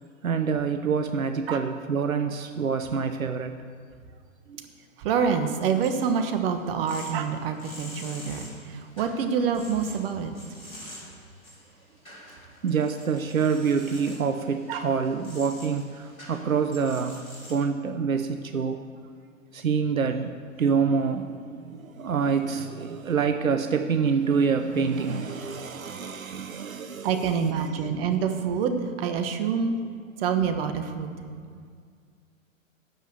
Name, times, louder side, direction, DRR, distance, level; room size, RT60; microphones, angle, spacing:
voice 1, 0.2-3.6 4.5-4.7 12.6-17.2 17.5-18.8 19.5-27.3, right 6 dB, 80° right, 8 dB, 0.8 m, -26 dB
voice 2, 5.0-10.3 14.7-14.9 27.0-29.8 30.2-31.2, right 6 dB, 45° right, 7 dB, 1.3 m, -26 dB
sound 1, 5.8-17.6, equal, 90° left, 2.7 m, -46 dB
12.5 x 5.5 x 8.0 m, 2.1 s
figure-of-eight pair, 110°, 40 cm